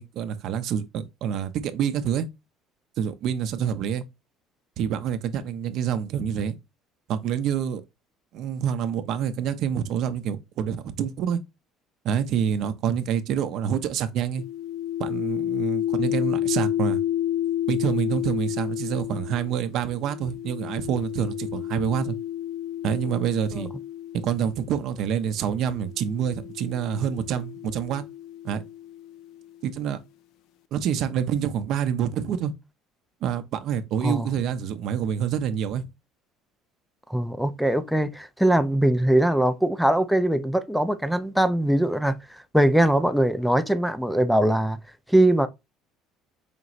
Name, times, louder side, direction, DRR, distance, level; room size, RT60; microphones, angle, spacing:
voice 1, 0.0-2.3 3.0-4.0 4.8-6.6 7.1-7.8 8.3-11.4 12.0-14.4 15.0-17.0 17.7-22.2 22.8-23.7 24.1-28.0 28.4-28.6 29.6-30.0 30.7-32.5 33.2-35.9, right 8 dB, 55° right, 0.6 m, -27 dB
sound 1, 14.4-24.7 25.6-29.4, left 12 dB, 70° left, 0.3 m, -31 dB
voice 2, 37.1-42.2 42.5-44.8 45.1-45.5, right 1 dB, ahead, 0.4 m, -21 dB
5.1 x 2.9 x 2.4 m
cardioid pair, 150°, 0 cm